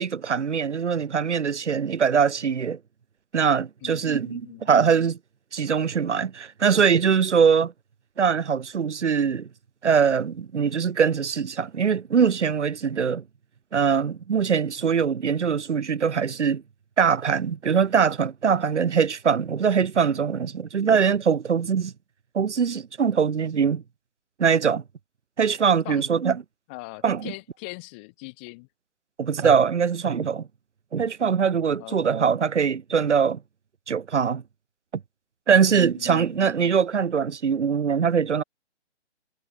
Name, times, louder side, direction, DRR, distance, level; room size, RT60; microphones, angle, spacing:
voice 1, 0.0-2.8 3.3-5.2 5.5-7.7 8.2-9.5 9.8-13.2 13.7-16.6 17.0-21.9 22.3-23.8 24.4-24.8 25.4-26.4 27.0-27.3 29.2-30.5 30.9-33.4 33.9-34.4 35.5-38.4, right 6 dB, 75° right, 0.6 m, -22 dB
voice 2, 3.8-4.9 25.8-26.0 26.7-28.7 31.6-32.1 35.5-36.4, left 29 dB, 10° left, 0.8 m, -42 dB
figure-of-eight pair, 140°, 36 cm